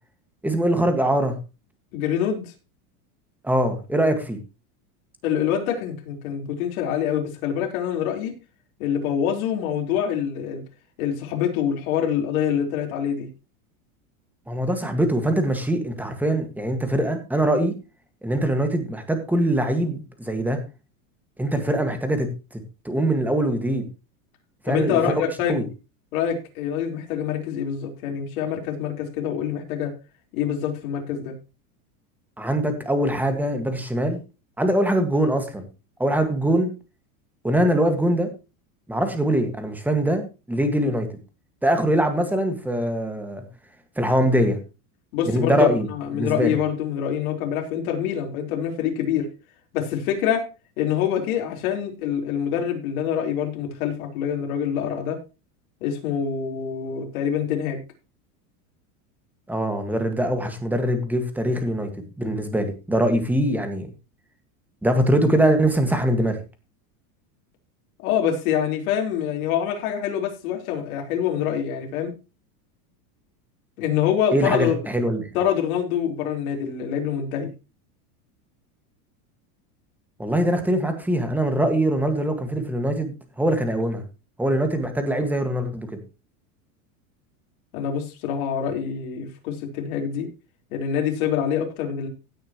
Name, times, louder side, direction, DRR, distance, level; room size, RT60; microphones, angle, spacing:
voice 1, 0.4-1.4 3.4-4.4 14.5-17.8 18.2-20.6 21.4-22.3 22.9-23.9 24.7-25.2 25.5-25.6 32.4-34.2 34.6-35.7 36.0-36.7 37.4-38.3 38.9-41.1 41.6-43.4 44.0-44.6 45.3-45.9 46.1-46.6 59.5-61.9 62.2-63.9 64.8-66.4 74.3-75.3 80.2-84.0 84.4-86.0, right 1 dB, 5° right, 7 dB, 1.8 m, -22 dB
voice 2, 1.9-2.5 5.2-8.3 8.8-10.6 11.0-13.3 24.6-25.6 26.1-29.9 30.3-31.3 45.1-49.3 49.7-50.5 50.8-55.2 55.8-57.8 61.9-62.0 68.0-72.1 73.8-74.8 75.3-77.5 87.7-90.3 90.7-92.1, left 8 dB, 70° left, 2 dB, 4.3 m, -25 dB
16.5 x 8.9 x 3.1 m, 0.29 s
supercardioid pair, 150°, 44 cm